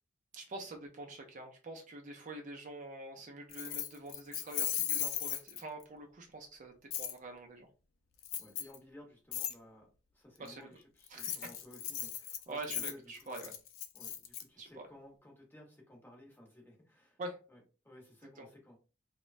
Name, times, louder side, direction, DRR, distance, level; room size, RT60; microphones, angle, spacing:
voice 1, 0.3-7.7 10.4-10.7 11.1-11.5 12.5-13.5 14.6-14.8 17.2-17.4 18.4-18.5, right 2 dB, 40° right, 3 dB, 0.4 m, -45 dB
Keys jangling, 3.5-5.8 6.9-7.1 8.2-8.8 9.3-9.5 11.0-14.4, left 11 dB, 85° left, 0.4 m, -37 dB
voice 2, 8.4-9.9 10.1-13.5 13.9-17.2 17.5-18.8, left 1 dB, 10° left, -1 dB, 0.8 m, -56 dB
3.0 x 2.1 x 2.4 m, 0.33 s
head